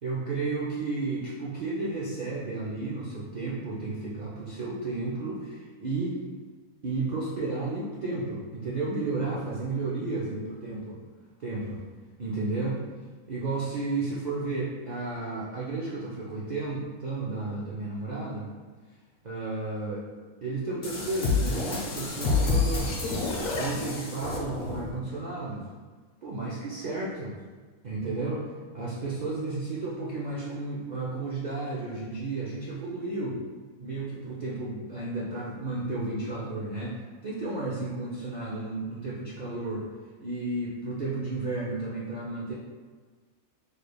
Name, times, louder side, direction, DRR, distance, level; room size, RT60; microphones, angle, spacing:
voice 1, 0.0-6.2 6.8-11.0 11.4-11.8 12.2-12.8 13.3-18.5 19.2-20.0 20.4-22.9 23.5-25.6 26.2-27.4 27.8-28.5 28.7-33.4 33.8-39.8 40.2-42.5, right 3 dB, 80° right, -7 dB, 0.4 m, -32 dB
sound 1, 20.8-25.0, left 3 dB, 50° left, 0.8 m, -28 dB
4.9 x 3.2 x 2.2 m, 1.4 s
omnidirectional pair, 1.5 m